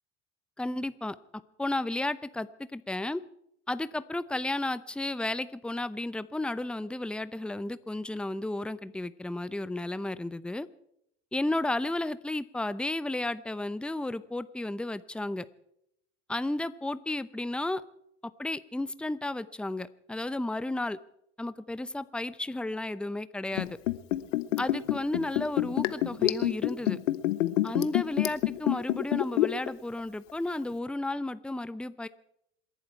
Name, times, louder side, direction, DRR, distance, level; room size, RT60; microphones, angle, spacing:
voice 1, 0.6-1.2 1.6-3.2 3.7-10.7 11.3-15.5 16.3-17.8 18.4-21.0 21.4-23.8 24.6-27.0 27.6-32.1, left 2 dB, 5° left, 15 dB, 0.7 m, -33 dB
Liquid, 23.5-29.7 30.0-30.1, left 16 dB, 85° left, 0.9 m, -27 dB
27.5 x 11.5 x 4.6 m, 0.75 s
hypercardioid pair, 65°, 36 cm